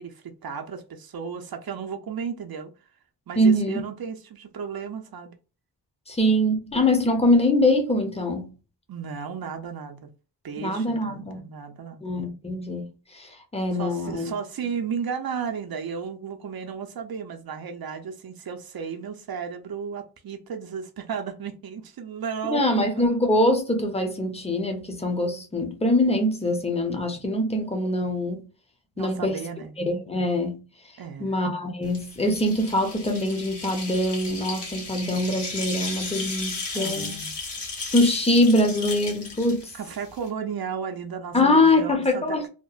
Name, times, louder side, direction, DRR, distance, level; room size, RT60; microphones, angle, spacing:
voice 1, 0.0-2.7 3.3-5.4 8.9-10.1 10.4-12.0 13.8-23.0 29.0-29.8 31.0-31.4 36.7-37.3 39.7-42.5, right 6 dB, 55° right, 0.6 m, -34 dB
voice 2, 3.4-3.8 6.1-8.5 10.6-11.4 12.0-12.9 13.1-14.3 22.5-28.5 29.0-29.4 29.8-30.6 31.2-37.1 37.9-39.7 41.3-42.5, left 1 dB, 15° left, 0.6 m, -23 dB
sound 1, 31.9-40.3, left 3 dB, 70° left, 1.1 m, -35 dB
2.9 x 2.0 x 2.3 m
wide cardioid pair, 75°, 43 cm